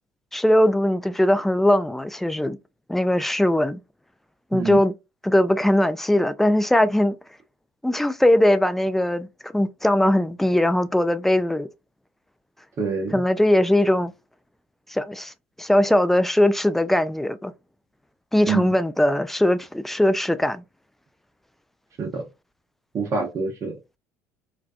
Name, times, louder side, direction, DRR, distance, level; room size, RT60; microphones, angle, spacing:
voice 1, 0.3-2.6 2.9-3.8 4.5-4.9 5.2-7.2 7.8-11.7 13.1-14.1 14.9-15.3 15.6-17.5 18.3-20.6, left 1 dB, 5° left, 0.3 m, -20 dB
voice 2, 12.8-13.2 18.5-18.7 22.0-22.2 22.9-23.7, right 5 dB, 40° right, 0.7 m, -26 dB
2.4 x 2.2 x 2.4 m
hypercardioid pair, 65°, 7 cm